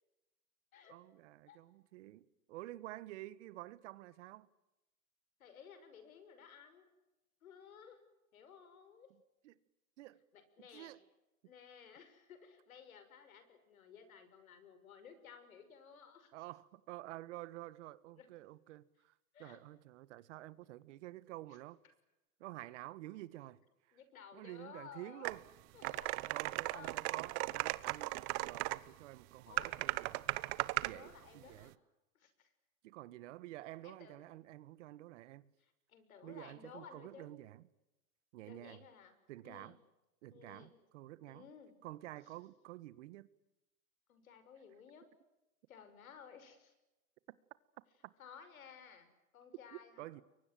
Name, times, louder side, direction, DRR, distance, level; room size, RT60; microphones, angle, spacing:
voice 1, 0.9-4.5 9.4-9.6 10.0-10.2 10.7-11.0 16.3-19.1 19.4-21.8 22.4-23.6 24.3-25.4 26.3-30.4 30.8-31.7 32.8-35.5 36.2-37.6 38.3-38.8 39.3-39.7 40.2-41.5 41.8-43.3 48.0-48.1 49.7-50.2, right 16 dB, 60° right, 1.5 m, -50 dB
voice 2, 5.4-6.9 7.4-8.0 8.3-9.1 10.3-11.0 11.4-16.3 18.1-18.3 19.3-19.6 23.9-25.4 25.7-26.2 26.6-27.1 29.5-29.8 30.8-31.7 32.1-32.5 33.8-34.2 35.6-37.3 38.5-39.2 39.4-39.8 40.3-40.7 41.3-41.8 44.1-45.1 45.7-46.7 48.2-50.2, left 7 dB, 80° left, 5.9 m, -56 dB
sound 1, 25.2-25.4 25.8-28.8 29.6-30.9, right 22 dB, 40° right, 1.0 m, -37 dB
29.5 x 23.5 x 7.7 m
hypercardioid pair, 130°, 41 cm